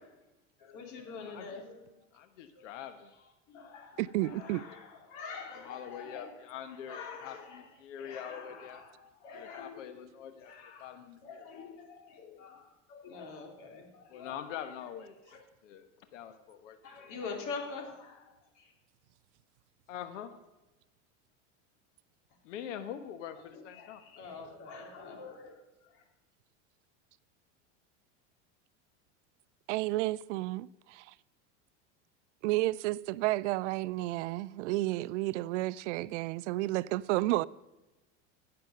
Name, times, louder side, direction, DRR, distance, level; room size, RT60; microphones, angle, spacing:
voice 1, 0.6-1.9 3.5-6.3 6.7-7.6 8.0-10.0 10.4-11.0 11.2-14.5 15.3-15.4 16.8-18.7 23.5-25.6 25.9-26.0, left 5 dB, 55° left, 3.2 m, -45 dB
voice 2, 1.2-1.6 2.1-3.1 4.2-4.4 5.6-8.8 9.3-10.5 10.8-11.5 14.1-15.1 15.6-17.1 19.9-20.3 22.4-24.0, left 9 dB, 85° left, 1.2 m, -44 dB
voice 3, 4.0-4.6 29.7-31.0 32.4-37.5, right 18 dB, 75° right, 0.5 m, -31 dB
16.5 x 6.8 x 6.5 m
supercardioid pair, 130°, 36 cm